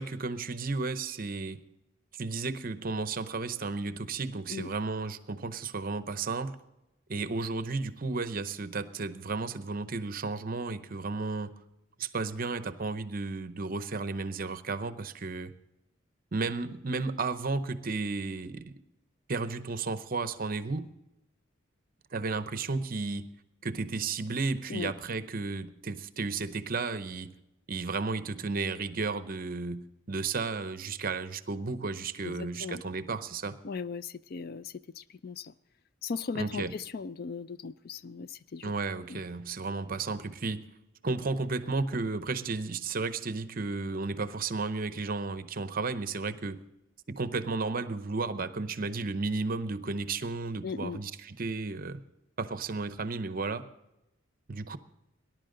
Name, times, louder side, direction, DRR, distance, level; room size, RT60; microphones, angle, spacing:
voice 1, 0.0-1.6 2.1-6.6 7.1-11.5 12.0-15.5 16.3-18.8 19.3-20.9 22.1-23.3 23.6-27.3 27.7-33.6 36.3-36.7 38.6-40.7 41.0-46.6 47.1-52.0 52.4-53.7 54.5-54.8, right 3 dB, 45° right, 12 dB, 0.7 m, -33 dB
voice 2, 32.2-32.8 33.6-35.5 36.0-38.7 39.1-39.2 50.6-51.0, left 5 dB, 50° left, 15 dB, 0.4 m, -38 dB
19.5 x 11.0 x 3.8 m, 0.92 s
head